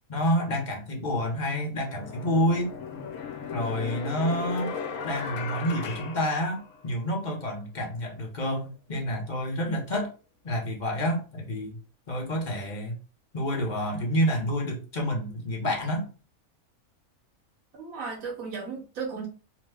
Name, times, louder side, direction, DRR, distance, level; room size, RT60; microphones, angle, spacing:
voice 1, 0.1-2.7 3.5-4.7 5.0-10.1 10.4-11.8 12.1-12.9 13.3-16.1, equal, 40° left, 0 dB, 0.7 m, -28 dB
sound 1, 1.9-7.1, left 6 dB, 70° left, 0.9 m, -36 dB
voice 2, 17.7-19.3, right 5 dB, 70° right, -2 dB, 1.2 m, -35 dB
3.0 x 2.1 x 3.4 m, 0.35 s
omnidirectional pair, 1.5 m